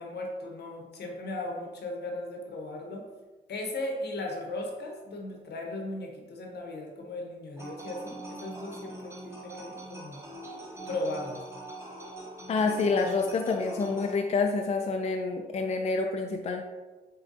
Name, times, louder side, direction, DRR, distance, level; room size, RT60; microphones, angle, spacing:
voice 1, 0.0-3.1 3.5-10.2 10.9-11.4, left 2 dB, 65° left, 1 dB, 0.9 m, -37 dB
sound 1, 7.6-14.2, right 2 dB, 15° right, 1.0 m, -43 dB
voice 2, 12.5-16.6, left 4 dB, 35° left, 3 dB, 0.4 m, -27 dB
6.4 x 2.2 x 2.6 m, 1.2 s
cardioid pair, 60°, 18 cm